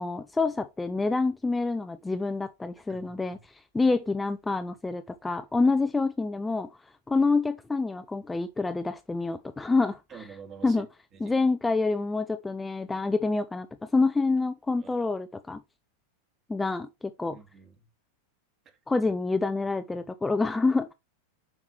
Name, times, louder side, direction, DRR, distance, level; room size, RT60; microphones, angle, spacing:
voice 1, 0.0-6.7 7.1-10.2 10.6-10.9 11.2-15.6 16.5-17.4 18.9-20.9, left 3 dB, 10° left, 0.6 m, -27 dB
voice 2, 2.9-3.4 7.1-7.2 10.1-10.8 11.1-11.3 14.8-15.2 17.3-17.9 18.7-18.8, right 6 dB, 30° right, 2.2 m, -48 dB
9.4 x 6.0 x 3.1 m
figure-of-eight pair, 90°, 0 cm